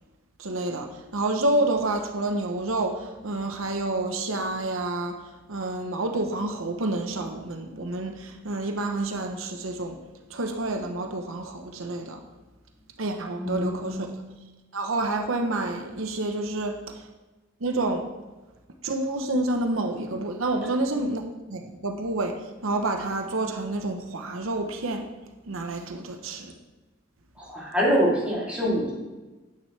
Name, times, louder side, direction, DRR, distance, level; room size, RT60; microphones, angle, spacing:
voice 1, 0.4-0.9 1.1-5.2 5.5-10.0 10.3-12.2 13.0-14.1 14.7-16.8 17.6-18.0 18.8-21.2 21.5-22.3 22.6-25.0 25.5-26.5, right 2 dB, 90° right, 4 dB, 0.9 m, -28 dB
voice 2, 13.4-14.1 20.6-20.7 27.4-28.9, equal, 5° right, -7 dB, 3.0 m, -25 dB
9.8 x 9.1 x 3.3 m, 1.2 s
head